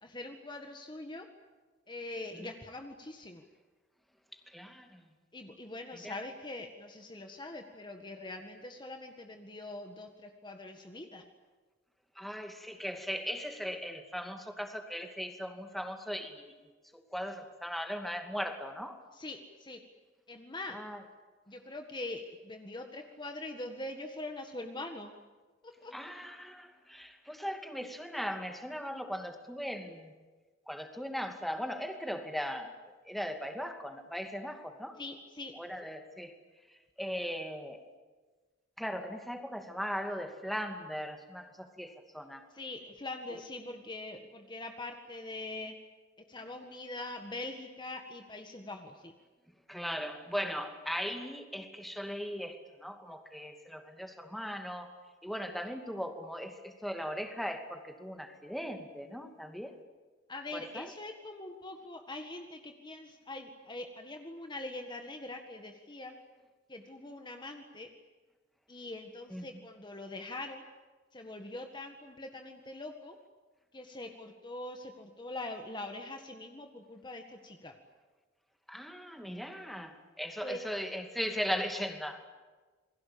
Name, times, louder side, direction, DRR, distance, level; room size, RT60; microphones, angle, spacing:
voice 1, 0.0-1.3 1.9-3.4 5.3-11.2 19.1-19.8 20.3-20.8 21.5-25.1 25.6-25.9 35.0-35.5 42.5-45.7 46.3-49.1 60.3-66.2 66.7-67.9 68.7-70.6 71.1-73.2 73.7-77.8 80.4-80.6, left 2 dB, 25° left, 5 dB, 1.8 m, -43 dB
voice 2, 4.3-5.0 5.9-6.2 12.2-16.5 16.9-19.0 20.7-21.0 25.9-30.1 30.7-35.0 35.5-36.4 37.0-37.8 38.8-42.5 43.3-43.4 49.7-55.0 55.2-59.7 60.5-60.9 69.3-69.5 78.7-82.3, equal, ahead, 5 dB, 2.5 m, -38 dB
29.0 x 22.0 x 8.7 m, 1.3 s
head